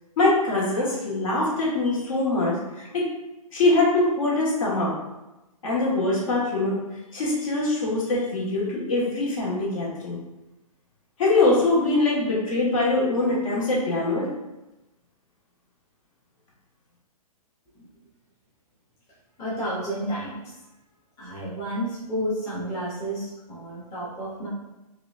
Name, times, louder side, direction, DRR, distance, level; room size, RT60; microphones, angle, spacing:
voice 1, 0.2-3.0 3.5-4.9 5.6-6.8 7.1-10.2 11.2-14.3, left 2 dB, 60° left, -5 dB, 1.4 m, -23 dB
voice 2, 19.4-20.6 21.2-24.5, equal, 15° left, -9 dB, 0.8 m, -31 dB
4.8 x 2.4 x 2.4 m, 1.0 s
hypercardioid pair, 160°, 19 cm